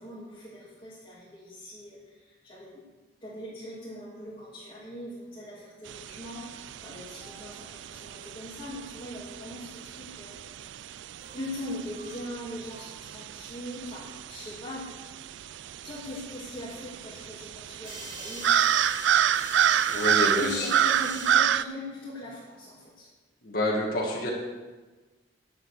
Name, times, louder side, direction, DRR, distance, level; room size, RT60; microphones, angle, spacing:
voice 1, 0.0-2.9 3.2-10.3 11.3-14.9 15.8-18.8 20.4-23.1, left 1 dB, 25° left, -11 dB, 2.8 m, -41 dB
sound 1, 5.9-21.6, right 9 dB, 70° right, 0.3 m, -29 dB
sound 2, 7.2-7.6 11.2-11.6 11.9-12.2 12.7-12.9 17.8-21.4, right 1 dB, 25° right, 3.6 m, -42 dB
voice 2, 19.9-20.7 23.4-24.3, left 1 dB, 50° left, -4 dB, 2.0 m, -28 dB
10.5 x 8.4 x 6.7 m, 1.2 s
head